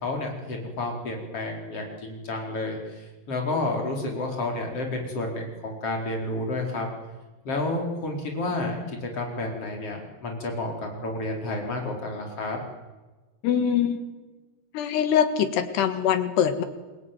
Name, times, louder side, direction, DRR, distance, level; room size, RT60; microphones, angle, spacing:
voice 1, 0.0-6.9 7.5-12.6, left 2 dB, 35° left, 1 dB, 5.2 m, -30 dB
voice 2, 13.4-14.1 14.7-16.6, left 8 dB, 80° left, 9 dB, 3.8 m, -23 dB
28.5 x 22.0 x 9.3 m, 1.2 s
omnidirectional pair, 4.7 m